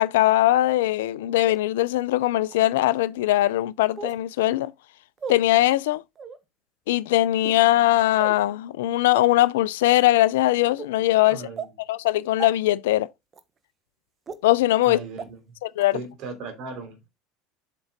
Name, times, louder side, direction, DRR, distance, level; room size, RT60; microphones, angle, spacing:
voice 1, 0.0-4.7 5.3-6.0 6.9-11.5 11.9-13.1 14.4-15.0 15.6-16.0, left 15 dB, 75° left, 0.4 m, -21 dB
sound 1, 1.5-1.6 2.5-2.6 4.0-4.2 5.2-5.4 6.2-6.4 7.3-7.6 8.2-8.4 9.1-9.2 9.9-10.1 10.8-10.9 11.6-11.7 12.4-12.5 13.3-13.4 14.3-14.4 15.2-15.3 15.8-15.9, right 5 dB, 30° right, 1.1 m, -35 dB
voice 2, 11.3-11.7 14.8-15.4 15.9-17.1, right 4 dB, 55° right, 3.0 m, -37 dB
7.8 x 4.5 x 3.8 m
hypercardioid pair, 75°, 0 cm